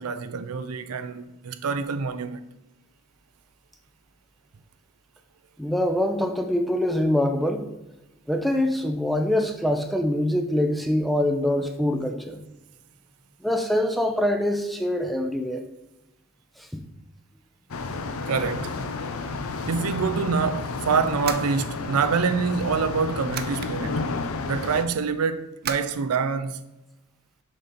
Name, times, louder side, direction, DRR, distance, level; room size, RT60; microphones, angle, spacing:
voice 1, 0.0-2.4 18.2-18.8 19.6-24.1 24.5-26.6, right 5 dB, 90° right, 0.5 m, -26 dB
voice 2, 5.6-7.6 8.3-12.4 13.4-15.6 16.6-16.8, left 1 dB, ahead, 0.5 m, -24 dB
sound 1, 17.7-24.8, left 3 dB, 70° left, 0.6 m, -31 dB
sound 2, 21.2-22.3 22.9-23.7 25.6-25.9, right 7 dB, 45° right, 0.6 m, -34 dB
6.5 x 5.3 x 4.2 m
head